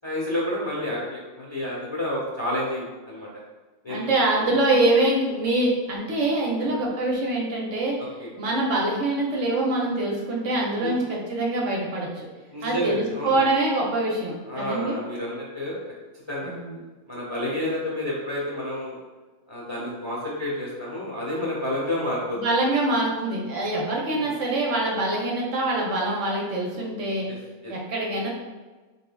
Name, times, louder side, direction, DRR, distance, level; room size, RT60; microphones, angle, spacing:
voice 1, 0.0-3.3 3.8-4.1 4.4-4.5 6.6-6.7 8.0-8.3 10.8-11.0 12.5-13.5 14.5-15.8 16.3-16.5 17.1-19.0 19.5-22.4 24.0-24.3 27.3-27.4 27.6-27.7, left 1 dB, 30° left, -6 dB, 0.6 m, -30 dB
voice 2, 3.9-8.0 8.4-12.3 12.6-15.0 16.4-16.8 22.3-27.3 27.7-28.3, right 2 dB, 60° right, -3 dB, 1.0 m, -24 dB
4.4 x 3.7 x 2.2 m, 1.3 s
omnidirectional pair, 1.5 m